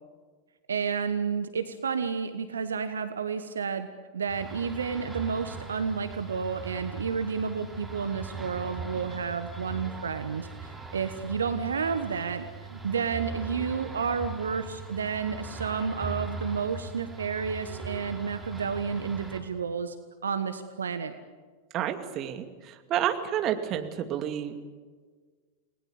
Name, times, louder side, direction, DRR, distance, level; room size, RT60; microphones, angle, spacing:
voice 1, 0.7-3.9 4.1-19.9 20.2-21.1, right 6 dB, 70° right, 10 dB, 1.2 m, -31 dB
sound 1, 4.3-19.4, right 4 dB, 5° right, 3.8 m, -40 dB
voice 2, 21.7-24.5, right 10 dB, 35° right, 7 dB, 2.4 m, -30 dB
29.0 x 20.0 x 8.4 m, 1.5 s
figure-of-eight pair, 90°, 0 cm